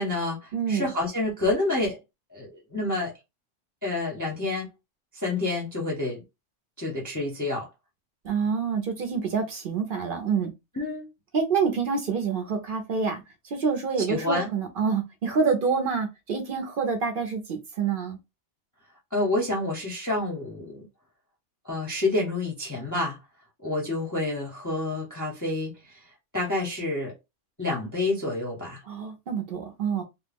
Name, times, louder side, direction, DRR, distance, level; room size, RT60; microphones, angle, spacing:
voice 1, 0.0-2.0 2.3-3.1 3.8-4.7 5.1-6.2 6.8-7.7 10.8-11.0 14.1-14.5 19.1-20.9 21.6-23.2 23.6-25.7 26.3-27.1 27.6-28.8, left 2 dB, 20° left, 0.6 m, -28 dB
voice 2, 0.5-0.9 8.2-10.5 11.3-18.2 28.8-30.0, right 5 dB, 55° right, 0.7 m, -27 dB
2.2 x 2.1 x 3.3 m
omnidirectional pair, 1.2 m